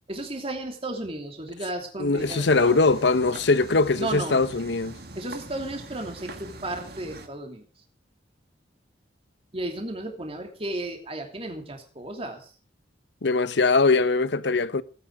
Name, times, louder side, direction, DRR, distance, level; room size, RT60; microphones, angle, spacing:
voice 1, 0.1-2.8 4.0-4.5 5.1-7.7 9.5-12.5, right 1 dB, 30° right, 2.9 m, -34 dB
voice 2, 2.0-5.0 13.2-14.8, left 3 dB, 70° left, 0.8 m, -21 dB
sound 1, 2.2-7.3, right 2 dB, 60° right, 2.3 m, -43 dB
18.0 x 9.6 x 6.4 m
head